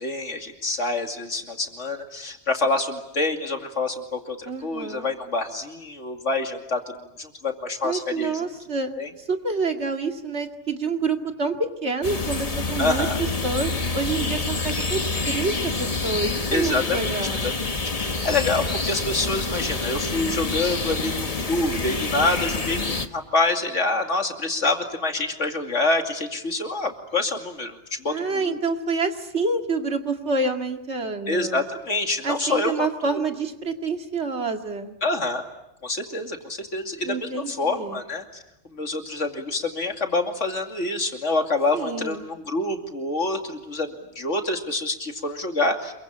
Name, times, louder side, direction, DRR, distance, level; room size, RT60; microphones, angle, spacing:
voice 1, 0.0-8.5 9.0-9.1 12.8-13.2 16.5-17.5 18.0-28.1 28.4-28.6 31.3-33.2 35.0-35.4 35.8-38.2 38.6-45.9, left 2 dB, 80° left, 4 dB, 3.0 m, -26 dB
voice 2, 4.5-5.1 7.8-8.9 9.3-13.1 13.4-15.0 15.3-17.5 28.1-31.6 32.2-35.0 37.0-38.0 41.7-42.2, right 3 dB, 65° right, 4 dB, 2.5 m, -27 dB
sound 1, 12.0-23.1, left 3 dB, 30° left, 1.4 m, -27 dB
27.5 x 23.5 x 8.6 m, 0.86 s
omnidirectional pair, 1.2 m